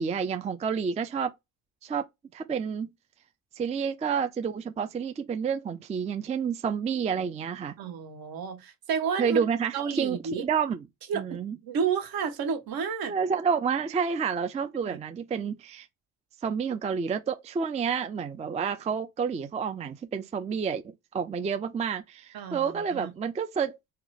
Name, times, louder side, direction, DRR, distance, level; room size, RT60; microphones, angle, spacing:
voice 1, 0.0-1.3 1.8-2.1 2.3-2.9 3.6-7.7 9.2-10.9 11.1-11.6 13.1-15.9 16.4-20.8 21.1-23.8, right 6 dB, 15° right, 0.4 m, -29 dB
voice 2, 7.8-9.4 9.7-10.4 11.1-13.1 14.8-15.0 22.3-23.1, right 6 dB, 60° right, 1.2 m, -31 dB
2.9 x 2.1 x 3.9 m
supercardioid pair, 80°, 41 cm